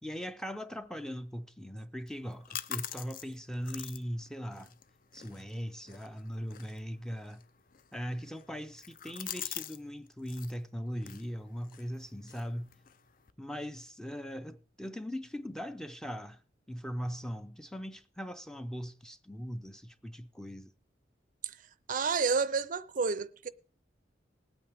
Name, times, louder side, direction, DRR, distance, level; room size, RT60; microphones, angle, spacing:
voice 1, 0.0-4.8 5.1-7.4 7.9-12.7 13.4-16.4 16.7-20.7, equal, 5° left, 0.5 m, -40 dB
sound 1, 2.1-9.8 10.1-10.6 11.0-13.3, left 10 dB, 50° left, 0.5 m, -46 dB
voice 2, 21.9-23.5, right 5 dB, 45° right, 0.5 m, -30 dB
20.0 x 8.9 x 3.5 m
head